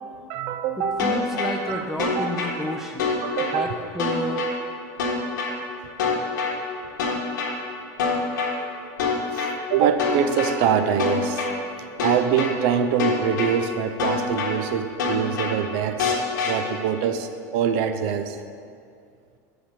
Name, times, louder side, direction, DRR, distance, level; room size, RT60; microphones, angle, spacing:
voice 1, 0.0-2.3 2.7-2.8 3.2-3.8 9.3-11.4 12.0-16.1 16.4-18.4, right 8 dB, 60° right, 9 dB, 0.6 m, -24 dB
voice 2, 0.8-3.1 3.4-4.5, equal, 5° right, 1 dB, 0.5 m, -31 dB
sound 1, 1.0-1.5 2.0-2.5 3.0-3.5 4.0-4.5 5.0-5.5 6.0-6.5 7.0-7.5 8.0-8.5 9.0-9.5 10.0-10.5 11.0-11.5 12.0-12.5 13.0-13.5 14.0-14.5 15.0-15.5 16.0-16.5, left 5 dB, 85° left, 1.5 m, -24 dB
5.9 x 5.2 x 6.7 m, 2.3 s
supercardioid pair, 110°, 10 cm